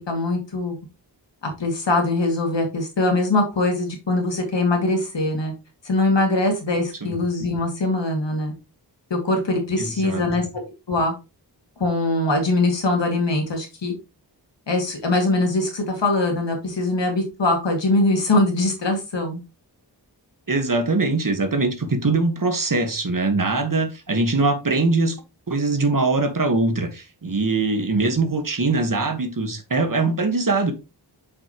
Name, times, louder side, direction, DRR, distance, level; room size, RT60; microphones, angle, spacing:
voice 1, 0.1-0.8 1.4-5.5 5.8-8.5 9.1-10.6 10.9-11.1 11.8-13.9 14.7-19.4, left 2 dB, 85° left, 2.2 m, -22 dB
voice 2, 9.8-10.2 20.5-25.2 25.5-30.7, right 3 dB, 50° right, 1.4 m, -22 dB
6.8 x 5.7 x 2.9 m
wide cardioid pair, 70°, 42 cm